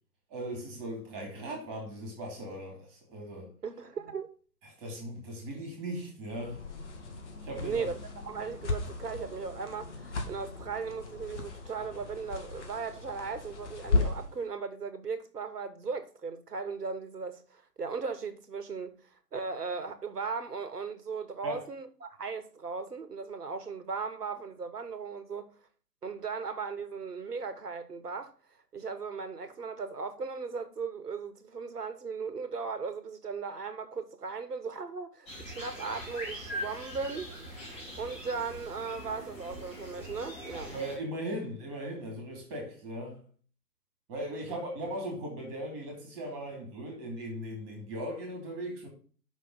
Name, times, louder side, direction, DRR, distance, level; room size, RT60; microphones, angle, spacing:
voice 1, 0.3-3.5 4.6-6.6 7.4-7.9 21.4-21.6 40.7-43.2 44.1-48.9, right 1 dB, 20° right, 2.8 m, -38 dB
voice 2, 3.6-4.3 7.6-8.0 8.2-18.9 19.3-25.5 26.0-28.3 28.7-37.3 38.0-40.8, right 5 dB, 70° right, 1.3 m, -37 dB
sound 1, 6.3-14.4, left 3 dB, 45° left, 1.6 m, -36 dB
sound 2, 35.3-41.0, equal, 15° left, 2.3 m, -42 dB
6.0 x 5.2 x 5.5 m
figure-of-eight pair, 135°, 48 cm